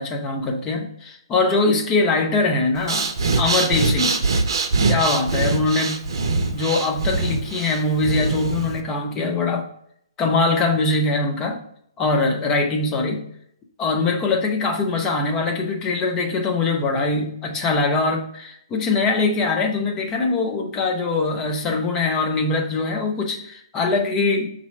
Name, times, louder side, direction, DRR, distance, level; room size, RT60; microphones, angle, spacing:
voice 1, 0.0-3.1 3.4-4.2 4.8-6.0 6.5-9.7 10.2-11.6 12.0-13.2 13.8-24.5, left 3 dB, 20° left, 3 dB, 0.8 m, -22 dB
Breathing, 2.7-8.8, right 3 dB, 60° right, 0.7 m, -23 dB
4.2 x 2.7 x 4.3 m, 0.69 s
figure-of-eight pair, 135°, 3 cm